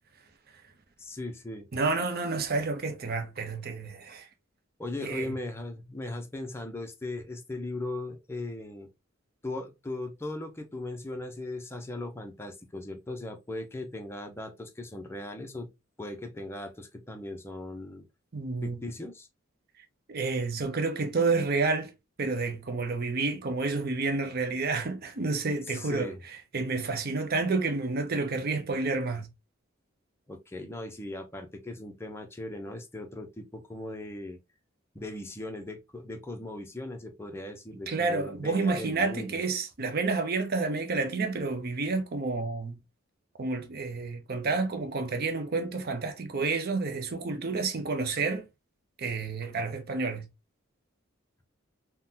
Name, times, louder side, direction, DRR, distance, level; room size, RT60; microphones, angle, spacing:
voice 1, 1.0-1.7 4.8-8.9 9.4-15.7 16.0-18.1 18.6-19.3 25.7-26.2 30.3-34.4 34.9-39.4, left 2 dB, 10° left, 0.5 m, -38 dB
voice 2, 1.7-4.3 5.0-5.3 18.3-18.8 20.1-21.9 22.2-26.1 26.5-29.3 37.9-42.8 43.4-48.5 49.0-50.3, right 3 dB, 45° right, 0.6 m, -29 dB
3.7 x 2.1 x 2.7 m
head